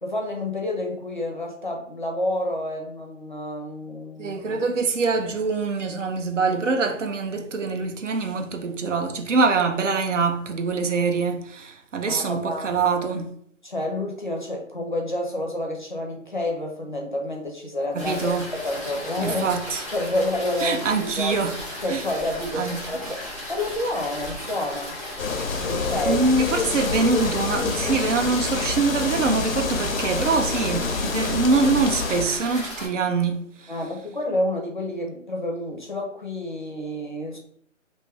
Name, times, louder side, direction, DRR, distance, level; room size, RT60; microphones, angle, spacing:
voice 1, 0.0-4.6 12.1-12.8 13.6-19.4 19.9-21.4 21.8-23.2 23.5-25.0 25.6-26.2 33.7-37.4, left 1 dB, 40° left, 0.5 m, -29 dB
voice 2, 4.2-13.3 17.9-18.5 19.2-19.9 20.6-21.6 21.9-22.1 22.5-22.9 26.0-33.7, right 4 dB, 65° right, 0.5 m, -24 dB
sound 1, 18.0-32.9, left 1 dB, 15° right, 1.0 m, -36 dB
sound 2, 25.2-32.3, left 4 dB, 85° left, 0.6 m, -27 dB
2.6 x 2.3 x 3.2 m
hypercardioid pair, 175°, 39 cm